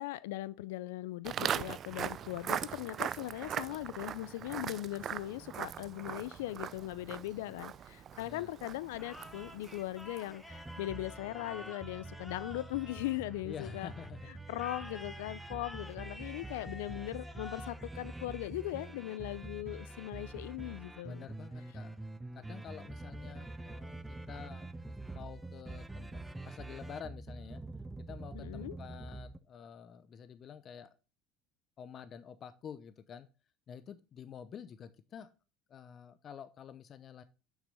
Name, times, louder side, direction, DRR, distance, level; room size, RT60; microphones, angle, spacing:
voice 1, 0.0-13.9 14.5-21.3 28.3-28.8, left 16 dB, 80° left, 0.4 m, -39 dB
Walk footsteps, 1.2-10.5, right 9 dB, 45° right, 0.4 m, -40 dB
voice 2, 8.1-8.5 13.4-14.3 21.1-22.0 22.3-26.1 26.4-27.6 28.0-30.9 31.8-33.3 33.7-35.3 35.7-37.2, left 8 dB, 45° left, 0.7 m, -49 dB
sound 1, 8.9-13.8 14.5-18.9, left 1 dB, 10° left, 1.7 m, -51 dB
sound 2, 10.5-29.4, right 2 dB, 10° right, 0.7 m, -46 dB
7.3 x 6.1 x 5.2 m
hypercardioid pair, 75°, 0 cm